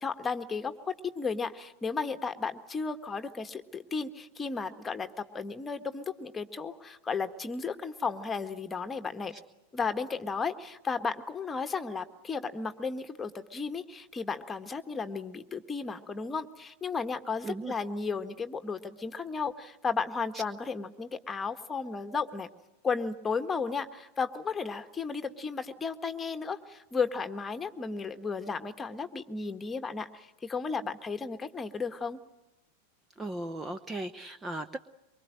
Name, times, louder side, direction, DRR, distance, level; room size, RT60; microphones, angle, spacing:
voice 1, 0.0-9.3 9.7-22.5 22.8-32.2, left 5 dB, 15° left, 8 dB, 1.6 m, -34 dB
voice 2, 33.2-34.8, right 2 dB, 15° right, 11 dB, 0.9 m, -37 dB
24.5 x 24.0 x 7.7 m, 0.95 s
figure-of-eight pair, 90°, 0 cm